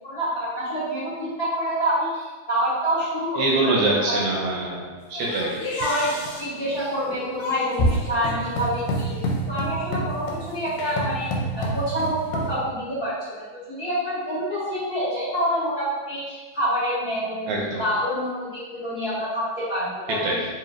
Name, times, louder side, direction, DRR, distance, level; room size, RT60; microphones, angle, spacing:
voice 1, 0.0-3.7 4.1-4.2 5.6-9.1 9.5-17.5 17.8-20.3, equal, 40° left, -14 dB, 1.6 m, -27 dB
voice 2, 3.4-5.6 17.5-17.8 20.1-20.4, right 2 dB, 80° right, -3 dB, 2.0 m, -24 dB
sound 1, 5.1-12.6, equal, 85° left, 2.0 m, -28 dB
4.5 x 3.1 x 2.5 m, 1.3 s
omnidirectional pair, 3.4 m